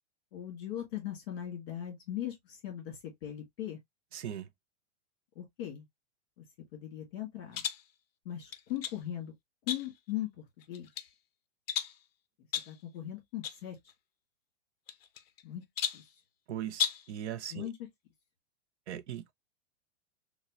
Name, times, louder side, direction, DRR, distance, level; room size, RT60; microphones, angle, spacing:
voice 1, 0.3-3.8 5.4-5.9 6.4-6.5 6.7-7.6 8.3-9.3 9.7-10.9 12.7-13.8 15.4-15.6 15.9-16.0 17.5-17.8, left 12 dB, 35° left, 1.9 m, -39 dB
voice 2, 4.1-4.5 16.5-16.8 17.1-17.7 18.9-19.3, right 10 dB, 65° right, 0.6 m, -38 dB
sound 1, 7.5-7.9 8.5-9.0 9.7-10.1 10.6-11.1 11.7-12.0 12.5-12.8 13.4-13.6 13.9-14.0 14.9-15.4 15.8-16.1 16.7-17.1, left 9 dB, 55° left, 0.6 m, -35 dB
4.0 x 2.2 x 2.9 m
supercardioid pair, 175°, 37 cm